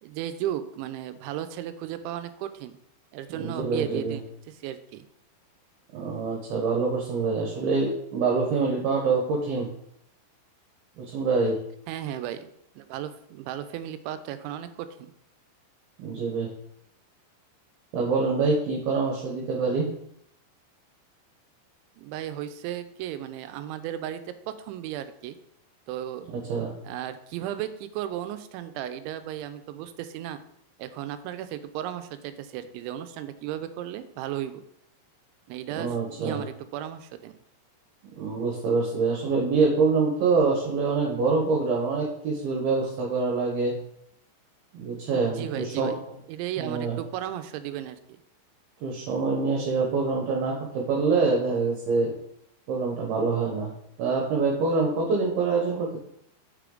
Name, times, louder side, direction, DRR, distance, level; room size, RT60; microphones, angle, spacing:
voice 1, 0.0-2.8 3.1-5.1 11.9-12.5 12.8-15.1 22.0-25.4 25.9-26.3 26.8-30.4 30.8-34.6 35.5-37.4 45.1-48.0, right 11 dB, 90° right, 11 dB, 3.0 m, -35 dB
voice 2, 3.4-4.2 5.9-9.7 11.0-11.6 16.0-16.5 17.9-19.9 26.3-26.7 35.8-36.4 38.2-43.8 44.7-45.9 46.6-47.0 48.8-52.1 52.7-53.7 54.0-56.0, right 4 dB, 70° right, -1 dB, 2.6 m, -25 dB
6.7 x 6.7 x 3.8 m, 0.72 s
omnidirectional pair, 5.2 m